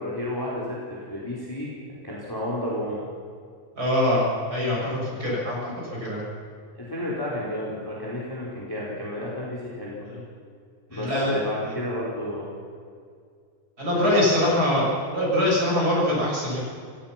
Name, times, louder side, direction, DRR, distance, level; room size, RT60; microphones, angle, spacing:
voice 1, 0.0-1.7 2.0-3.1 6.7-10.1 10.9-12.5 14.1-14.4, left 1 dB, 5° left, -5 dB, 4.0 m, -31 dB
voice 2, 3.8-4.2 4.5-6.2 10.1-10.2 10.9-11.3 11.7-11.8 13.8-16.6, left 1 dB, 25° right, -4 dB, 7.5 m, -23 dB
28.0 x 17.0 x 6.0 m, 2.2 s
omnidirectional pair, 4.2 m